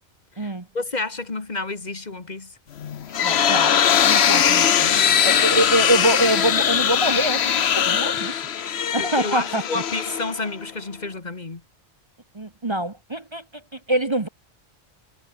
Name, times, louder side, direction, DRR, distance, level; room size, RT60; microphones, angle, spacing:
voice 1, 0.3-2.6 9.0-11.6, left 3 dB, 40° left, 1.7 m, -30 dB
sound 1, 2.8-10.7, left 8 dB, 70° left, 1.1 m, -20 dB
voice 2, 3.2-8.3 8.9-9.6 12.3-13.4 13.7-14.3, right 1 dB, 25° right, 1.1 m, -25 dB
omnidirectional pair, 1.1 m